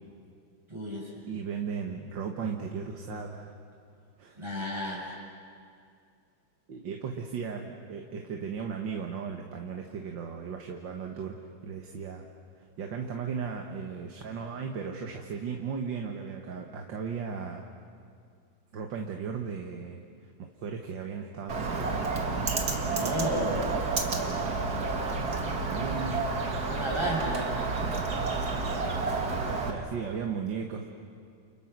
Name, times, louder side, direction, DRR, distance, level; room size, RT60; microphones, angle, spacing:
voice 1, 0.7-1.1 4.4-5.1 22.9-23.7 26.7-27.9, right 1 dB, 15° right, -4 dB, 7.5 m, -32 dB
voice 2, 1.3-3.5 4.2-4.5 6.7-12.3 12.6-17.7 18.7-20.0 20.4-22.4 25.6-26.7 29.7-30.9, right 6 dB, 75° right, 3 dB, 2.1 m, -36 dB
Bird, 21.5-29.7, right 3 dB, 55° right, 2.5 m, -30 dB
29.5 x 29.5 x 6.1 m, 2.3 s
omnidirectional pair, 2.0 m